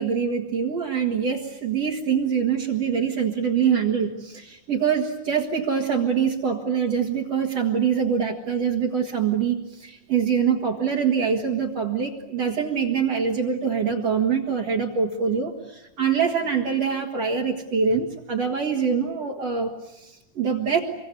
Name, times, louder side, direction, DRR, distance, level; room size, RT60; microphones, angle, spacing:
voice 1, 0.0-20.8, right 6 dB, 55° right, 5 dB, 2.8 m, -24 dB
25.5 x 23.0 x 9.8 m, 0.91 s
omnidirectional pair, 3.7 m